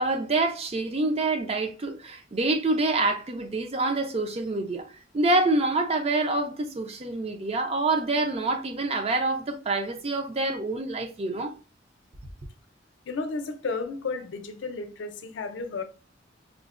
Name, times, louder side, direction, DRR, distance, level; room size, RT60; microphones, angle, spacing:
voice 1, 0.0-4.9 5.1-11.5, right 2 dB, 35° right, 0.5 m, -26 dB
voice 2, 13.1-15.8, left 4 dB, 85° left, 0.5 m, -33 dB
4.9 x 2.1 x 2.4 m
head